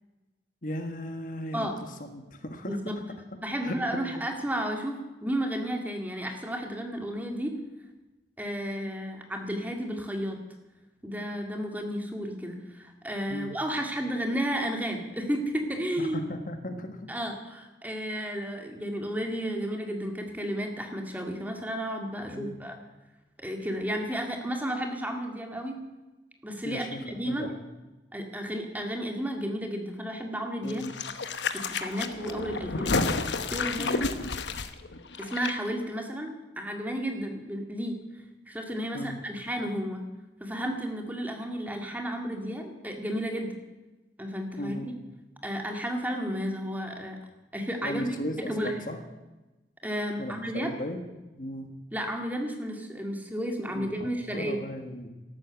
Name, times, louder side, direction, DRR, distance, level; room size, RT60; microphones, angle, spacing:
voice 1, 0.6-2.8 3.6-4.0 13.3-13.6 16.0-17.1 22.3-22.6 26.6-27.0 27.3-27.5 30.6-30.9 33.8-34.1 38.9-39.2 44.6-44.9 47.8-49.0 50.2-51.0 51.4-51.7 53.7-55.1, left 1 dB, 45° left, 6 dB, 1.5 m, -36 dB
voice 2, 2.6-3.0 3.4-7.5 8.4-10.4 11.0-16.3 17.1-22.8 23.4-25.8 26.4-27.5 28.1-30.8 31.5-32.9 33.5-34.2 35.2-36.3 36.6-38.0 38.5-40.0 40.4-43.5 44.2-44.9 45.4-47.2 47.5-48.7 49.8-50.7 51.9-54.6, equal, 10° right, 3 dB, 2.0 m, -32 dB
sound 1, 30.7-35.5 35.8-35.9, left 4 dB, 80° left, 1.1 m, -31 dB
13.5 x 12.5 x 8.0 m, 1.1 s
head